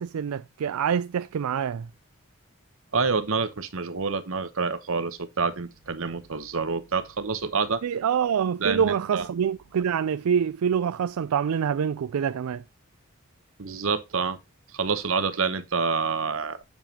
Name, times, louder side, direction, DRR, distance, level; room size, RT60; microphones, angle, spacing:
voice 1, 0.0-1.9 7.8-12.6, right 7 dB, 85° right, 0.4 m, -26 dB
voice 2, 2.9-7.8 8.6-9.3 13.6-14.4 14.7-16.6, right 5 dB, 65° right, 0.9 m, -27 dB
7.6 x 7.1 x 2.8 m
head